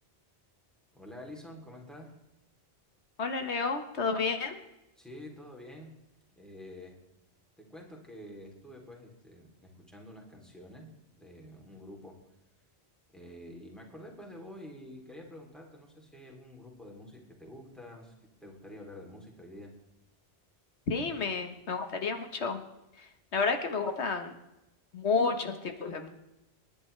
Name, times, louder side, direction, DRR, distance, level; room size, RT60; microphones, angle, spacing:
voice 1, 0.9-2.2 5.0-5.9 6.3-7.0 7.6-12.2 13.1-18.1 18.4-19.7, left 1 dB, ahead, 0 dB, 3.1 m, -48 dB
voice 2, 3.2-4.6 20.9-22.6 22.9-24.4 24.9-26.1, left 4 dB, 90° left, 6 dB, 1.6 m, -31 dB
28.0 x 10.5 x 3.3 m, 0.93 s
omnidirectional pair, 1.1 m